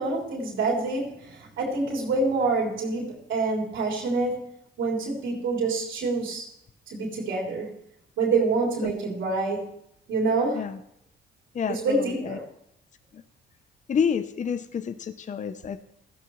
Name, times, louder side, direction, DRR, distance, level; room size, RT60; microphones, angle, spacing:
voice 1, 0.0-4.5 4.8-6.5 6.9-7.7 8.2-9.7 10.1-10.7 11.7-12.4, right 3 dB, 75° right, -3 dB, 3.3 m, -26 dB
voice 2, 11.5-12.4 13.1-13.2 13.9-15.8, left 7 dB, 40° left, 12 dB, 0.6 m, -29 dB
15.0 x 15.0 x 3.1 m, 0.78 s
cardioid pair, 90°, 20 cm